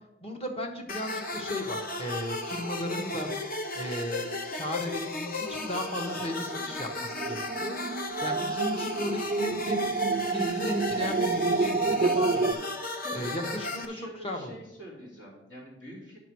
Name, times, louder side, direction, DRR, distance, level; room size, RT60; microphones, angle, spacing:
voice 1, 0.2-3.3 3.7-4.2 4.5-9.8 10.3-12.7 13.1-14.5, left 1 dB, 30° left, 3 dB, 1.2 m, -35 dB
sound 1, 0.9-13.8, left 2 dB, 50° left, 0.9 m, -35 dB
sound 2, 5.8-12.5, right 4 dB, 35° right, 0.3 m, -29 dB
voice 2, 13.0-16.2, equal, 75° left, -3 dB, 3.1 m, -46 dB
9.0 x 6.3 x 4.6 m, 0.90 s
head